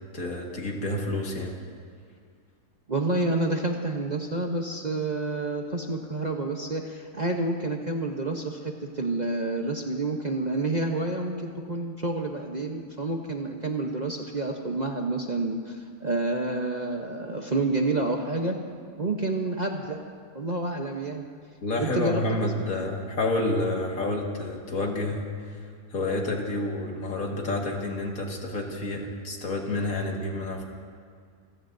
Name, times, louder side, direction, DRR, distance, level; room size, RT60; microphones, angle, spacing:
voice 1, 0.1-1.5 21.6-25.6 25.9-30.6, left 2 dB, 65° left, 0 dB, 2.3 m, -29 dB
voice 2, 2.9-18.6 19.0-20.0 20.3-21.2 21.8-22.9, right 2 dB, 35° right, 1 dB, 0.8 m, -29 dB
27.0 x 16.0 x 2.6 m, 2.1 s
omnidirectional pair, 1.6 m